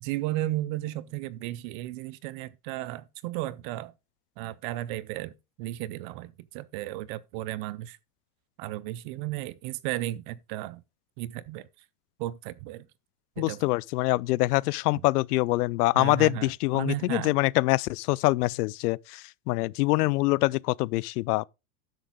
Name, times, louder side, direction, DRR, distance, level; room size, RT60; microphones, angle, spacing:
voice 1, 0.0-3.9 4.4-8.0 8.6-10.8 11.2-11.7 12.2-12.9 13.4-13.6 16.0-17.3, right 15 dB, 35° right, 0.4 m, -34 dB
voice 2, 13.4-21.5, left 21 dB, 75° left, 0.5 m, -25 dB
10.5 x 6.9 x 3.6 m
supercardioid pair, 150°, 47 cm